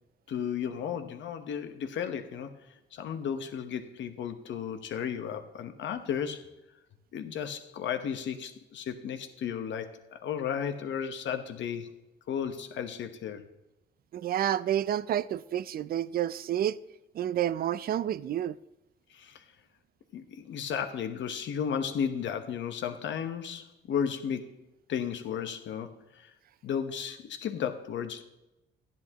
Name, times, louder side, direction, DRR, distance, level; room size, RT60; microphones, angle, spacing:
voice 1, 0.3-2.5 2.9-6.5 7.1-11.9 12.3-13.4 19.1-19.4 20.1-24.6 24.9-26.3 26.6-28.2, left 8 dB, 70° left, 1.1 m, -34 dB
voice 2, 14.1-16.8 17.1-18.5, right 11 dB, 50° right, 0.4 m, -29 dB
12.5 x 10.5 x 3.0 m
cardioid pair, 90°, 20 cm